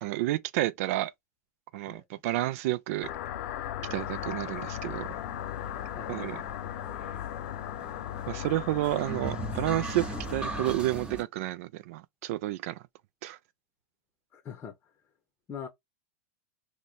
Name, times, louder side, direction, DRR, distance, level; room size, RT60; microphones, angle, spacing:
voice 1, 0.0-1.1 1.7-3.1 3.9-5.1 6.1-6.4 8.3-10.0 10.3-12.8 13.2-13.4, right 16 dB, 65° right, 0.4 m, -30 dB
voice 2, 1.9-2.2 5.9-6.3 14.3-14.7 15.5-15.7, left 7 dB, 30° left, 0.7 m, -42 dB
sound 1, 3.0-10.7, left 11 dB, 65° left, 0.5 m, -37 dB
sound 2, 3.9-11.2, right 3 dB, 10° right, 0.7 m, -41 dB
3.0 x 2.1 x 3.9 m
hypercardioid pair, 120°, 8 cm